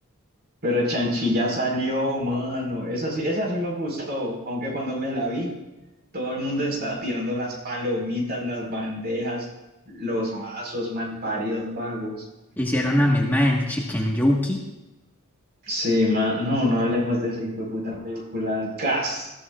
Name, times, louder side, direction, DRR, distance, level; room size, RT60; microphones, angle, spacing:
voice 1, 0.6-5.5 6.1-9.5 9.9-12.3 15.6-19.3, left 1 dB, 50° right, 0 dB, 4.9 m, -26 dB
voice 2, 12.6-14.6, left 1 dB, 10° left, -2 dB, 1.6 m, -21 dB
20.0 x 14.5 x 2.5 m, 1.0 s
head